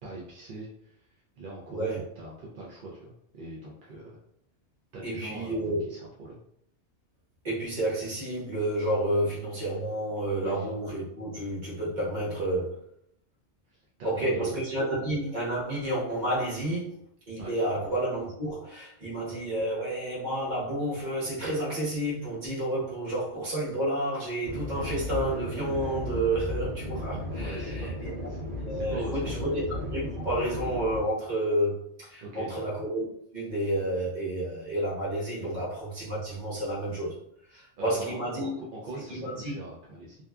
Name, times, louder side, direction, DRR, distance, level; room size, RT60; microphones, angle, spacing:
voice 1, 0.0-1.1 1.4-4.2 4.9-5.5 5.9-6.4 10.4-10.7 13.7-14.5 17.4-17.5 27.4-28.4 28.7-29.5 32.2-32.7 37.5-40.2, right 2 dB, 60° right, -5 dB, 0.6 m, -42 dB
voice 2, 1.7-2.0 5.0-5.9 7.4-12.8 14.0-16.9 17.3-28.1 28.6-33.0 33.3-37.1 37.5-38.6 38.9-39.5, right 1 dB, 40° right, -7 dB, 1.2 m, -30 dB
sound 1, 24.4-31.0, left 1 dB, 85° right, 1.3 m, -35 dB
2.7 x 2.3 x 2.3 m, 0.72 s
omnidirectional pair, 1.2 m